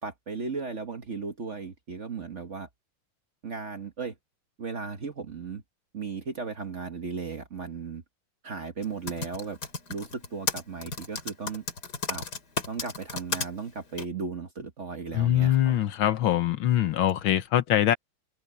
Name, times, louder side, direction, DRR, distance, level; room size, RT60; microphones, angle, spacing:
voice 1, 0.0-2.7 3.4-4.1 4.6-5.6 5.9-8.0 8.4-9.6 9.9-11.6 12.1-12.2 12.7-15.8, right 5 dB, 40° right, 1.3 m, -36 dB
Typing, 8.8-13.5 14.0-14.1, left 4 dB, 50° left, 3.0 m, -33 dB
voice 2, 15.1-18.0, left 12 dB, 75° left, 1.7 m, -23 dB
omnidirectional pair, 2.4 m